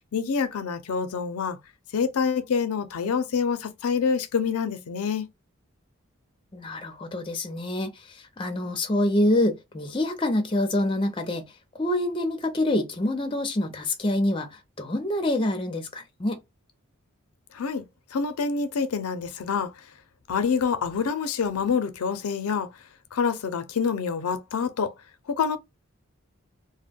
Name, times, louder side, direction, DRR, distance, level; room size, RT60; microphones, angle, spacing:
voice 1, 0.1-1.6 1.9-5.3 17.5-17.8 18.1-19.7 20.3-22.7 23.1-24.9 25.3-25.6, left 6 dB, 90° left, 0.5 m, -26 dB
voice 2, 6.5-11.5 11.7-16.4, left 1 dB, 25° left, 0.5 m, -26 dB
2.1 x 2.1 x 3.4 m
head